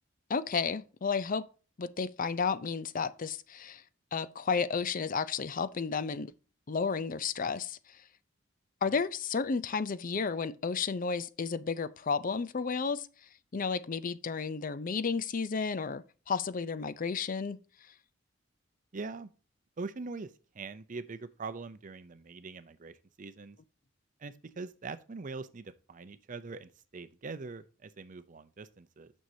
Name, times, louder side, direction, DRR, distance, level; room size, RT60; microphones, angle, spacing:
voice 1, 0.3-1.5 1.8-3.8 4.1-6.3 6.7-8.0 8.8-13.1 13.5-17.6, left 5 dB, 45° left, 0.5 m, -32 dB
voice 2, 18.9-19.3 19.8-23.6 24.2-29.1, right 4 dB, 40° right, 0.5 m, -43 dB
9.2 x 6.3 x 2.7 m
head